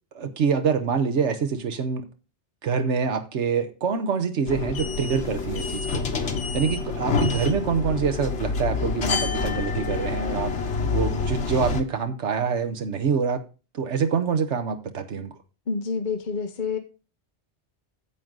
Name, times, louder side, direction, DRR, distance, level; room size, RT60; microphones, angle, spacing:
voice 1, 0.1-2.0 2.6-6.0 6.5-10.5 10.8-13.4 13.7-15.3, right 6 dB, 85° right, 1.4 m, -25 dB
sound 1, 4.5-11.8, left 4 dB, 80° left, 1.6 m, -27 dB
voice 2, 15.7-16.8, left 5 dB, 45° left, 1.0 m, -28 dB
9.8 x 7.5 x 3.9 m
omnidirectional pair, 1.2 m